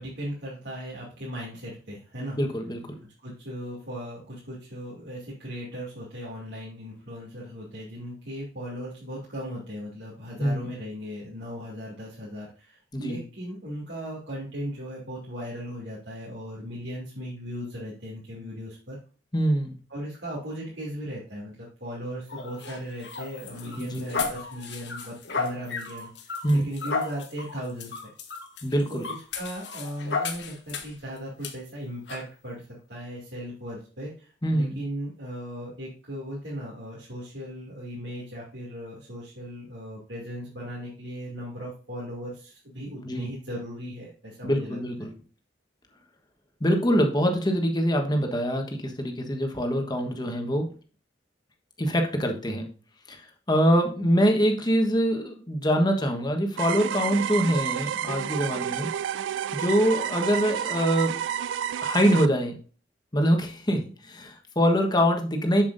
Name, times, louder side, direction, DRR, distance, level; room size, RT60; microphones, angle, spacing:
voice 1, 0.0-2.4 3.0-19.0 19.9-28.0 28.9-44.8, equal, 65° right, -6 dB, 2.5 m, -37 dB
voice 2, 2.4-3.0 10.4-10.7 12.9-13.2 19.3-19.7 23.8-24.0 26.4-26.7 28.6-29.0 34.4-34.8 43.0-43.3 44.4-45.1 46.6-50.7 51.8-52.7 53.1-53.2 53.5-58.9 59.5-61.2 61.8-62.5 63.1-65.6, equal, 25° left, 3 dB, 1.3 m, -24 dB
sound 1, 22.3-31.0 31.4-31.5 32.1-32.3, left 4 dB, 65° left, 1.3 m, -34 dB
sound 2, 56.6-62.3, right 9 dB, 85° right, 0.3 m, -30 dB
7.3 x 7.3 x 2.6 m, 0.38 s
head